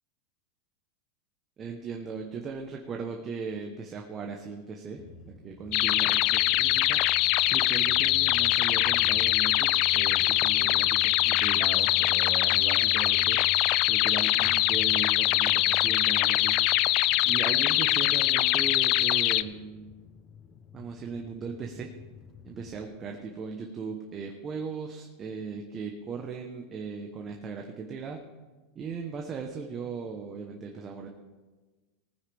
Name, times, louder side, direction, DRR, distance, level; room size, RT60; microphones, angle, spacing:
voice 1, 1.6-5.0 5.4-7.0 7.5-13.4 13.9-16.6 17.2-19.9 20.7-21.9 22.4-28.2 28.7-31.1, right 5 dB, 25° right, 2 dB, 1.0 m, -38 dB
sound 1, 5.0-22.8, left 5 dB, 30° left, 0.8 m, -47 dB
sound 2, 5.7-19.4, left 16 dB, 45° left, 0.4 m, -23 dB
19.0 x 9.6 x 3.5 m, 1.3 s
supercardioid pair, 145°, 0 cm